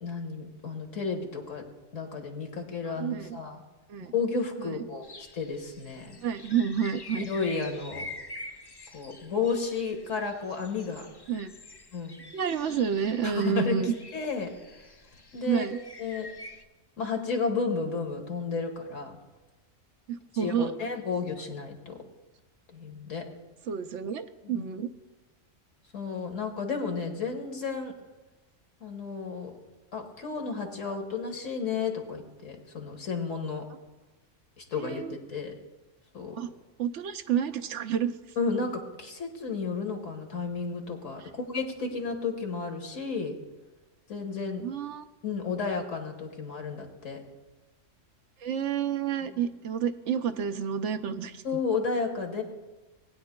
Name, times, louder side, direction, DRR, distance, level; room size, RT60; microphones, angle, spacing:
voice 1, 0.0-1.7 1.9-3.6 4.0-5.0 5.3-6.1 7.2-8.1 8.9-11.0 11.9-12.2 13.2-14.5 15.3-15.7 16.0-16.3 17.0-19.2 20.4-22.0 22.7-23.2 24.4-24.6 25.9-27.9 28.8-29.5 29.9-33.6 34.6-35.5 36.1-36.4 38.4-43.3 44.1-44.6 45.2-47.2 49.2-49.3 51.4-52.4, left 4 dB, 80° left, 3 dB, 1.9 m, -32 dB
voice 2, 2.8-3.4 3.9-4.1 4.6-4.8 6.2-7.3 11.3-11.5 12.3-13.9 15.4-15.8 20.1-20.7 23.7-24.9 34.8-35.2 36.3-36.5 36.8-38.4 41.2-41.3 44.6-45.1 48.4-51.4, right 8 dB, 70° right, 9 dB, 0.9 m, -30 dB
sound 1, 5.0-16.6, left 2 dB, 35° left, 0.4 m, -46 dB
19.5 x 9.5 x 2.2 m, 1.2 s
omnidirectional pair, 1.3 m